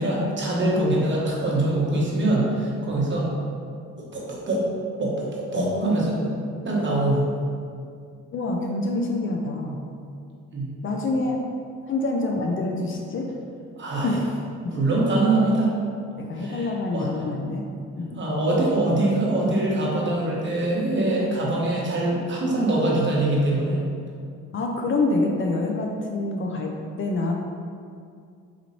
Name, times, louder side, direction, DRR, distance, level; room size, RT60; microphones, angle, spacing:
voice 1, 0.0-3.3 4.0-4.6 5.0-6.2 6.6-7.2 10.5-10.7 13.8-14.1 14.7-15.7 16.4-17.1 18.2-23.8, right 2 dB, 40° right, -5 dB, 1.0 m, -23 dB
voice 2, 5.5-6.6 8.3-9.8 10.8-11.4 11.9-13.3 14.0-14.3 14.6-14.8 16.2-17.6 18.0-18.2 24.5-26.7 27.0-27.3, left 2 dB, 45° left, 1 dB, 0.4 m, -26 dB
4.1 x 3.0 x 2.7 m, 2.3 s
cardioid pair, 90°, 30 cm